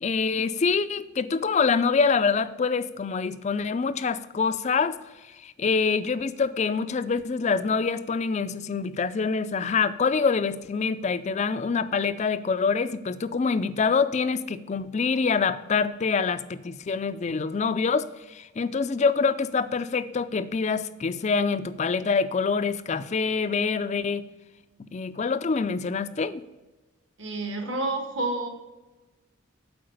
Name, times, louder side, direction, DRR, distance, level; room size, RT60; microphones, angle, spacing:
voice 1, 0.0-5.0 5.4-24.2 24.9-26.4, left 5 dB, 35° left, 14 dB, 0.4 m, -25 dB
voice 2, 27.2-28.5, right 2 dB, 65° right, 3 dB, 1.5 m, -29 dB
7.8 x 4.7 x 6.6 m, 1.1 s
head